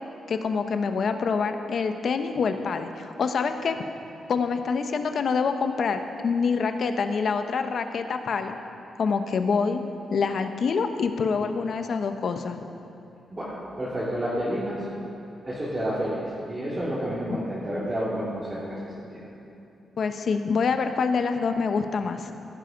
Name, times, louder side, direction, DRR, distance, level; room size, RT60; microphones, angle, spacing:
voice 1, 0.3-3.8 4.3-8.6 9.0-9.8 10.1-12.6 17.3-17.4 20.0-22.3, left 5 dB, 55° left, 7 dB, 0.9 m, -26 dB
voice 2, 13.3-14.8 15.4-19.2, equal, 25° right, -10 dB, 2.9 m, -30 dB
16.5 x 10.5 x 5.2 m, 2.8 s
cardioid pair, 125°, 0 cm